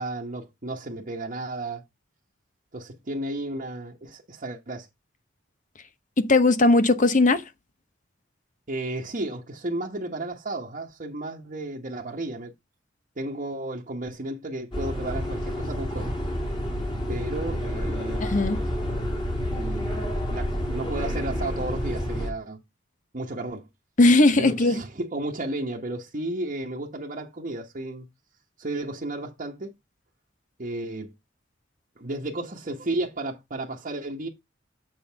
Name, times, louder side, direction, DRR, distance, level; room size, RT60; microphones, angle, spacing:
voice 1, 0.0-1.8 2.7-4.9 8.7-12.5 13.2-16.1 17.1-18.3 19.5-22.6 23.1-23.7 24.4-28.1 28.6-29.7 30.6-31.1 32.0-34.3, right 2 dB, 45° right, 1.1 m, -33 dB
voice 2, 6.2-7.4 18.2-18.6 24.0-24.7, left 2 dB, 45° left, 0.9 m, -18 dB
sound 1, 14.7-22.3, equal, 25° left, 2.8 m, -29 dB
7.4 x 5.5 x 3.4 m
head